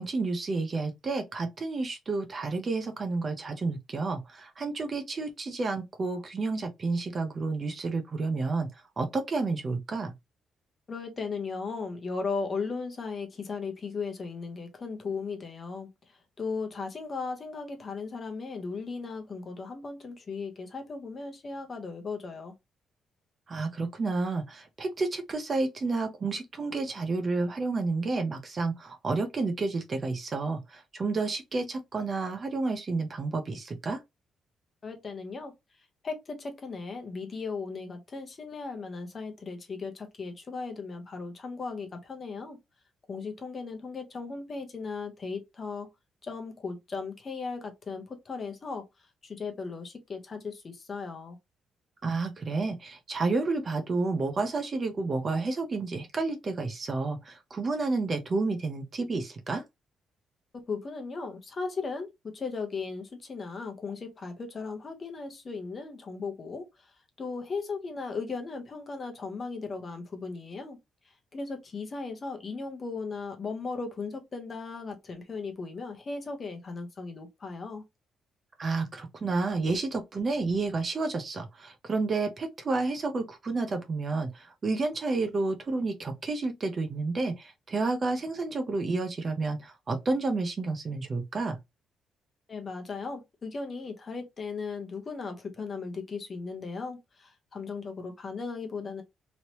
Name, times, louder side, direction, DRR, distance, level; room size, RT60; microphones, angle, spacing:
voice 1, 0.0-8.7 9.0-10.1 23.5-34.0 52.0-59.6 78.6-91.6, right 3 dB, 30° right, 0.6 m, -30 dB
voice 2, 10.9-15.9 16.4-22.5 34.8-35.5 36.0-42.6 43.1-45.9 46.2-48.8 49.2-51.4 60.5-66.7 67.2-70.8 71.3-77.8 92.5-99.0, left 4 dB, 30° left, 0.8 m, -37 dB
3.1 x 2.8 x 2.9 m
cardioid pair, 165°, 0 cm